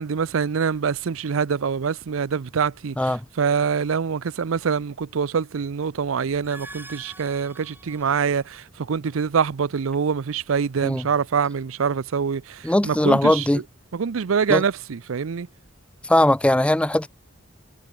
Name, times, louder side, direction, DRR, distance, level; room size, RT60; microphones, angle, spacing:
voice 1, 0.0-13.6 13.9-15.5, right 6 dB, 85° right, 0.5 m, -25 dB
sound 1, 6.3-8.6, right 2 dB, 10° right, 5.0 m, -44 dB
voice 2, 12.6-13.6 14.5-14.6 16.0-17.1, left 1 dB, 5° left, 0.4 m, -19 dB
head